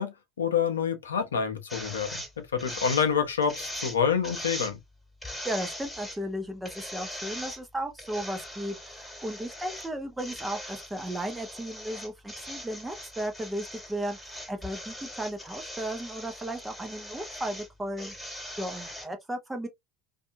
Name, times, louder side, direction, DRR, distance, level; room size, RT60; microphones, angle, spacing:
voice 1, 0.0-2.2 2.5-4.8, left 7 dB, 80° left, 0.7 m, -27 dB
sound 1, 1.7-2.3 2.6-3.1 3.4-4.0 4.2-4.7 5.2-6.2 6.7-7.6 8.0-9.9 10.2-17.7 18.0-19.1, equal, 5° left, 1.6 m, -40 dB
voice 2, 5.2-18.1 18.6-19.7, right 1 dB, 10° right, 0.8 m, -35 dB
2.6 x 2.6 x 2.6 m
hypercardioid pair, 75°, 0 cm